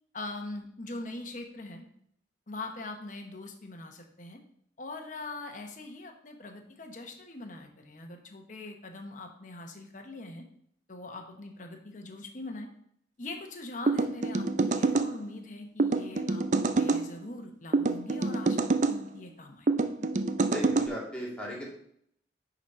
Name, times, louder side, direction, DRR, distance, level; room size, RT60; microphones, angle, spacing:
voice 1, 0.1-1.8 2.5-4.4 4.8-10.5 10.9-12.7 13.2-16.4 16.7-19.7, left 2 dB, 45° left, 4 dB, 1.0 m, -42 dB
sound 1, 13.9-15.1 15.8-17.0 17.7-19.0 19.7-20.9, right 3 dB, 40° right, 0.4 m, -26 dB
voice 2, 20.5-21.6, equal, 5° left, -4 dB, 1.9 m, -36 dB
10.0 x 4.1 x 4.3 m, 0.69 s
head